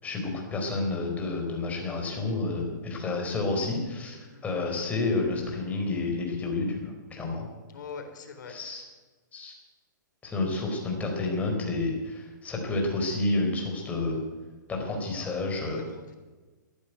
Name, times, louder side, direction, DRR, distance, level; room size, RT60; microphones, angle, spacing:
voice 1, 0.0-7.5 8.5-8.8 9.3-9.5 10.2-14.2 14.7-15.8, left 2 dB, 15° left, 1 dB, 4.7 m, -30 dB
voice 2, 7.7-8.5 15.9-16.1, left 5 dB, 70° left, 6 dB, 3.7 m, -43 dB
14.5 x 10.5 x 9.3 m, 1.3 s
hypercardioid pair, 140°, 11 cm